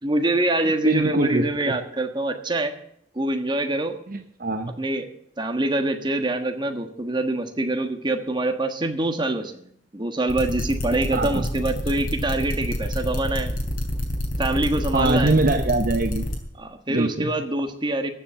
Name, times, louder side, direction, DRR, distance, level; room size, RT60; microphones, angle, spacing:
voice 1, 0.0-2.7 3.1-3.9 4.8-5.0 5.4-13.5 14.4-15.3 16.6-18.1, right 2 dB, 25° right, 6 dB, 1.4 m, -25 dB
voice 2, 0.7-1.7 4.1-4.7 11.1-11.5 14.9-16.3 16.9-17.3, right 2 dB, 50° right, 8 dB, 0.8 m, -23 dB
sound 1, 10.3-16.4, equal, 45° left, 3.4 m, -27 dB
14.5 x 7.2 x 7.7 m, 0.70 s
head